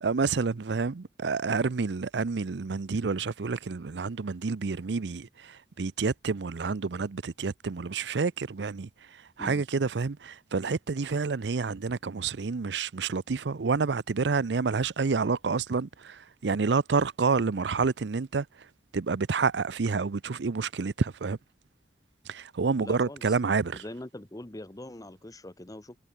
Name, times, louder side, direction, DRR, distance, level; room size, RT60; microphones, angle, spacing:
voice 1, 0.0-18.7 18.9-21.4 22.3-23.8, right 4 dB, 75° right, 0.6 m, -29 dB
voice 2, 22.8-23.2 23.8-26.0, left 1 dB, 20° left, 1.1 m, -42 dB
head